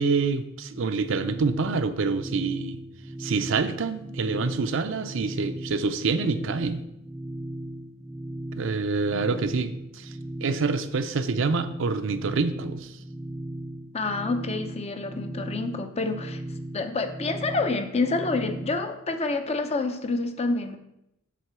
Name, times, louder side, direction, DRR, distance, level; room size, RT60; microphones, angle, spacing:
voice 1, 0.0-2.8 3.2-6.8 8.6-10.1 10.4-12.9, right 4 dB, 65° right, 10 dB, 0.5 m, -27 dB
sound 1, 0.7-18.9, right 1 dB, 10° right, 0.6 m, -37 dB
voice 2, 9.1-9.5 13.9-16.4 16.7-20.8, left 3 dB, 30° left, 7 dB, 0.6 m, -28 dB
7.6 x 3.8 x 6.6 m, 0.83 s
head